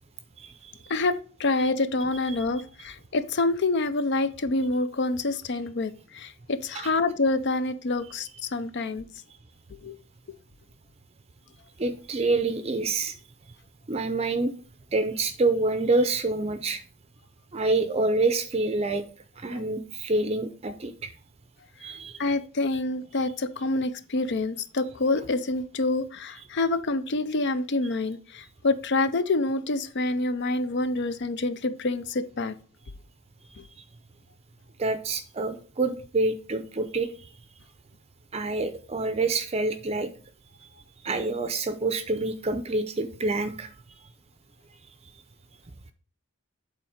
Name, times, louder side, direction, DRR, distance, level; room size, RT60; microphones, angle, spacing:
voice 1, 0.4-0.7 6.7-7.0 11.8-13.1 13.9-14.5 14.9-16.8 17.5-19.0 19.4-21.1 21.8-22.2 34.8-37.3 38.3-40.1 41.0-43.7, right 2 dB, 25° right, 10 dB, 0.5 m, -27 dB
voice 2, 0.9-9.1 9.8-10.0 19.5-19.6 22.2-32.5 33.6-33.7, left 2 dB, 50° left, 13 dB, 0.5 m, -27 dB
8.8 x 3.9 x 5.0 m, 0.40 s
head